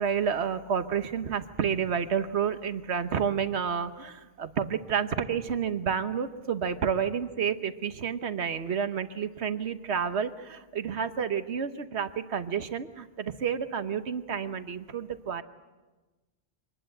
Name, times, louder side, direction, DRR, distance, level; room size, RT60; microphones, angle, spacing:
voice 1, 0.0-15.4, right 7 dB, 80° right, 10 dB, 1.4 m, -30 dB
25.0 x 20.0 x 7.8 m, 1.2 s
omnidirectional pair, 1.1 m